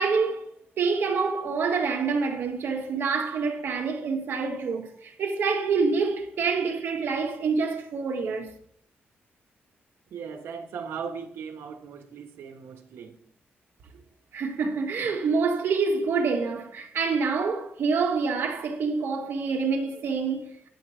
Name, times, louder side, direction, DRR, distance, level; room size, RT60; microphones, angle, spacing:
voice 1, 0.0-8.5 14.3-20.5, right 4 dB, 65° right, 1.7 m, -27 dB
voice 2, 10.1-13.2, right 6 dB, 90° right, 1.5 m, -38 dB
10.0 x 7.1 x 4.9 m
wide cardioid pair, 160°, 4 cm